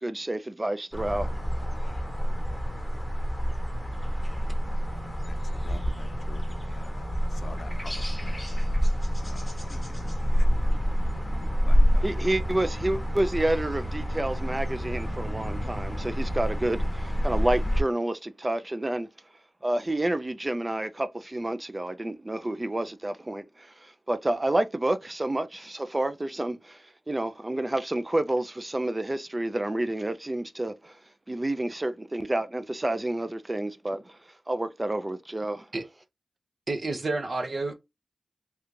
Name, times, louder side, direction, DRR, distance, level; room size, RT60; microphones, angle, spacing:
voice 1, 0.0-1.3 12.0-19.1 19.6-31.0 31.3-34.2 34.5-35.7, right 1 dB, 25° right, 0.4 m, -29 dB
sound 1, 0.9-17.8, equal, 5° left, 1.0 m, -27 dB
voice 2, 5.0-5.4 5.6-7.2 7.4-7.9 8.2-8.8 9.2-9.9 10.3-10.5 11.7-12.0, left 3 dB, 65° left, 0.5 m, -47 dB
voice 3, 36.7-37.7, right 3 dB, 50° right, 0.7 m, -29 dB
3.2 x 2.4 x 3.0 m
cardioid pair, 60°, 0 cm